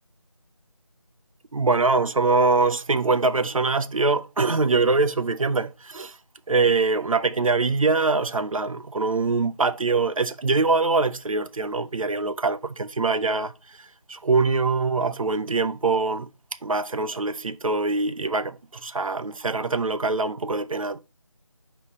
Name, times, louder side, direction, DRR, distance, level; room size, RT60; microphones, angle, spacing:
voice 1, 1.5-6.2 6.5-13.5 14.1-16.3 16.6-21.0, right 3 dB, 75° right, 0.6 m, -23 dB
5.6 x 4.4 x 4.0 m
figure-of-eight pair, 170°, 17 cm